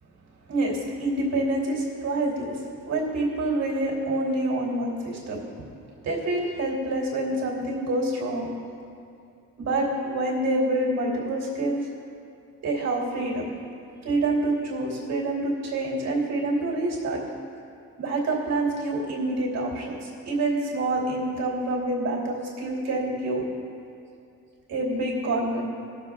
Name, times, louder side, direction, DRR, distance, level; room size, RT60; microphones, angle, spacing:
voice 1, 0.5-2.6 2.9-5.4 6.0-8.5 9.6-11.9 12.6-13.5 14.0-17.2 18.0-23.4 24.7-25.6, right 2 dB, 60° right, -3 dB, 3.1 m, -27 dB
17.5 x 7.3 x 3.6 m, 2.5 s
cardioid pair, 90°, 30 cm